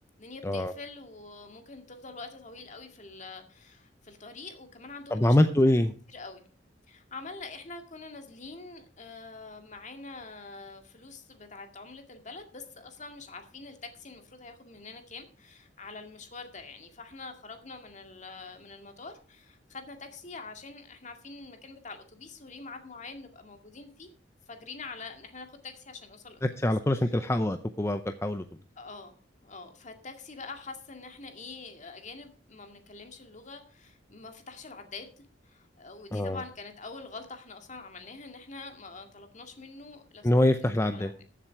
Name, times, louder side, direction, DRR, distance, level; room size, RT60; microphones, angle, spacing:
voice 1, 0.2-5.8 6.1-6.4 6.9-24.1 24.5-26.4 27.0-27.1 28.8-29.2 29.4-41.1, left 3 dB, 40° left, 6 dB, 2.1 m, -45 dB
voice 2, 5.1-5.9 26.4-28.4 36.1-36.4 40.2-41.1, left 1 dB, 15° left, 8 dB, 0.6 m, -24 dB
14.5 x 7.4 x 4.6 m, 0.39 s
head